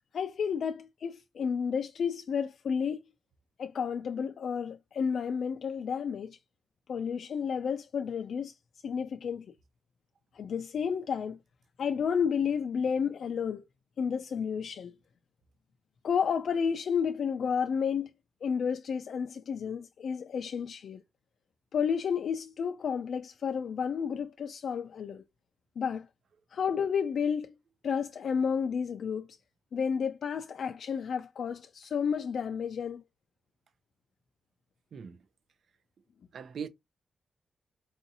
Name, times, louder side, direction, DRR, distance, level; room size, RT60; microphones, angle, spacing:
voice 1, 0.1-3.0 3.6-6.4 6.9-8.5 8.8-9.5 10.3-11.4 11.8-13.6 14.0-14.9 16.0-18.1 18.4-21.0 21.7-25.2 25.8-26.1 26.5-27.5 27.8-29.3 29.7-33.0, left 6 dB, 70° left, 0.3 m, -31 dB
voice 2, 34.9-35.2 36.3-36.7, right 7 dB, 70° right, 0.5 m, -40 dB
4.7 x 2.6 x 2.7 m
wide cardioid pair, 150°, 0 cm